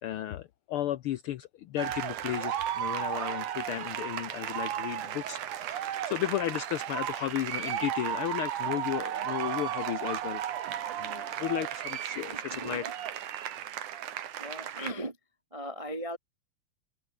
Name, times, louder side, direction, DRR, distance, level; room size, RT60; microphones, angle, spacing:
voice 1, 0.0-5.4 5.7-10.4 11.0-12.8, left 12 dB, 80° left, 1.2 m, -34 dB
sound 1, 1.8-14.9, right 11 dB, 90° right, 3.1 m, -34 dB
voice 2, 12.1-12.9 14.4-15.2 15.5-16.2, equal, 50° right, 0.4 m, -38 dB
open air
omnidirectional pair, 3.4 m